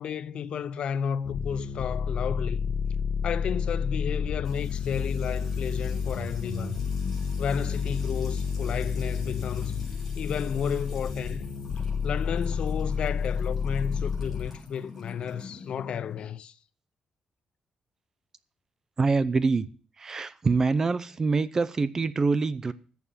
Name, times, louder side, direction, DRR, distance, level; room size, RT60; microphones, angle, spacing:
voice 1, 0.0-2.7 3.2-6.8 7.4-9.8 10.2-11.5 12.0-16.5, left 7 dB, 50° left, 0.5 m, -32 dB
sound 1, 1.2-14.5, left 6 dB, 75° left, 1.8 m, -30 dB
Music / Water tap faucet / Trickle dribble, 4.4-16.2, left 3 dB, 10° left, 5.4 m, -44 dB
voice 2, 19.0-19.6 20.0-22.7, right 4 dB, 25° right, 0.7 m, -25 dB
14.5 x 7.2 x 6.9 m
wide cardioid pair, 180°, 2 cm